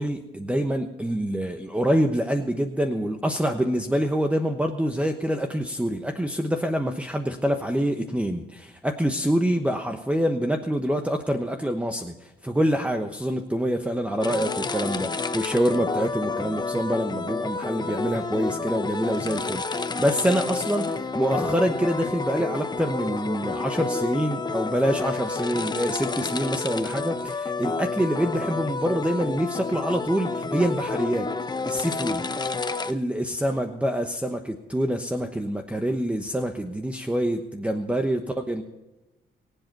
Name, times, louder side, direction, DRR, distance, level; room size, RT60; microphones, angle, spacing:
voice 1, 0.0-31.3 31.6-32.3 32.7-38.6, equal, 5° right, 5 dB, 1.1 m, -26 dB
sound 1, 14.2-32.9, left 4 dB, 20° left, 0.9 m, -30 dB
23.0 x 8.0 x 5.4 m, 1.0 s
cardioid pair, 90°, 20 cm